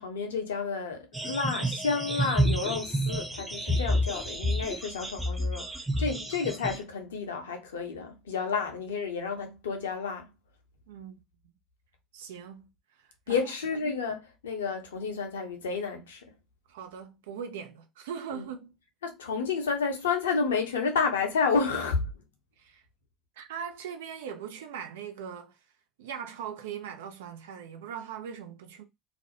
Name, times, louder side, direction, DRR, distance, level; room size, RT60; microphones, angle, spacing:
voice 1, 0.0-10.3 13.3-16.2 18.3-18.4 19.0-22.1, left 5 dB, 75° left, 0.6 m, -30 dB
sound 1, 1.1-6.8, equal, 10° right, 0.6 m, -29 dB
voice 2, 10.9-11.2 12.1-12.7 13.3-13.5 16.7-18.8 22.6-22.8 23.4-25.5 26.0-28.8, right 7 dB, 70° right, 0.4 m, -40 dB
2.4 x 2.0 x 2.8 m
figure-of-eight pair, 65°, 0 cm